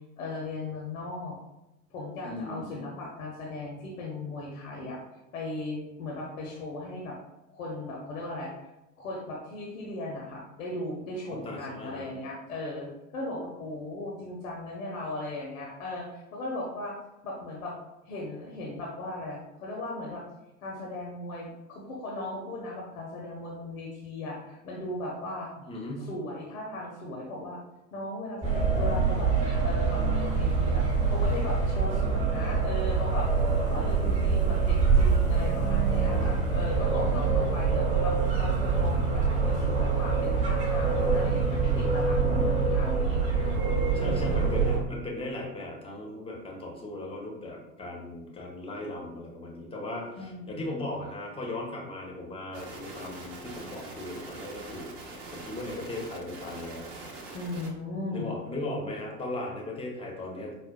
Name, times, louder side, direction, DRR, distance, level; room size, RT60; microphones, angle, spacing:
voice 1, 0.2-1.4 1.9-5.0 5.3-7.2 7.5-8.5 9.0-12.9 13.1-16.9 17.2-17.7 18.0-20.2 20.6-25.5 26.0-27.6 27.9-29.3 29.6-33.3 33.6-43.2 43.9-44.5 50.1-50.7 57.3-58.4, left 2 dB, 70° left, -2 dB, 0.7 m, -37 dB
voice 2, 2.2-2.8 11.3-12.1 25.7-26.1 33.7-34.3 36.9-37.2 43.9-56.9 58.1-60.6, left 2 dB, 15° left, -1 dB, 0.7 m, -37 dB
sound 1, 28.4-44.8, right 4 dB, 15° right, 1.0 m, -25 dB
sound 2, 52.5-57.7, right 3 dB, 45° right, 0.8 m, -43 dB
4.9 x 2.1 x 2.2 m, 0.96 s
figure-of-eight pair, 75°, 43 cm